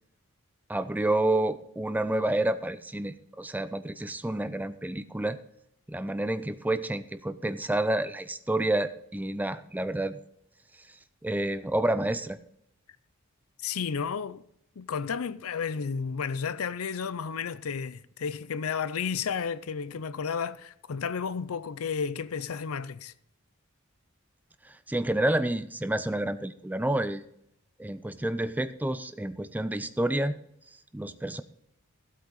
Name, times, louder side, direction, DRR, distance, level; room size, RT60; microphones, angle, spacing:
voice 1, 0.7-5.4 5.9-10.2 11.2-12.4 24.6-27.2 27.8-30.4 30.9-31.4, right 1 dB, 10° right, 0.4 m, -29 dB
voice 2, 13.6-14.4 14.8-23.1, left 6 dB, 75° left, 0.5 m, -32 dB
15.0 x 8.2 x 4.0 m
head